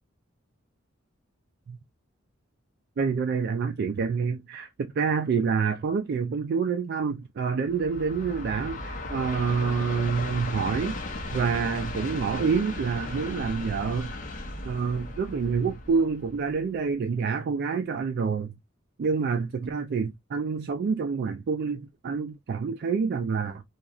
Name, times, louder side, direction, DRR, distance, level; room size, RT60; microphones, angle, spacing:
voice 1, 3.0-11.0 11.3-14.1 14.6-18.5 19.0-23.6, right 5 dB, 55° right, 0.3 m, -27 dB
Train, 7.6-16.9, left 2 dB, 40° left, 0.8 m, -36 dB
2.9 x 2.3 x 2.4 m
head